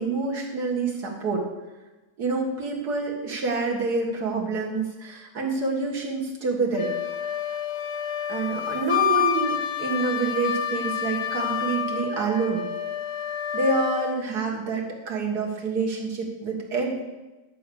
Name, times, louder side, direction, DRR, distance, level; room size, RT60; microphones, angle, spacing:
voice 1, 0.0-1.4 2.2-6.9 8.3-12.7 13.5-17.0, right 4 dB, 75° right, 0 dB, 2.1 m, -27 dB
Wind instrument woodwind instrument, 6.7-14.2, left 9 dB, 60° left, 0.7 m, -28 dB
10.5 x 4.7 x 6.8 m, 1.1 s
omnidirectional pair, 1.7 m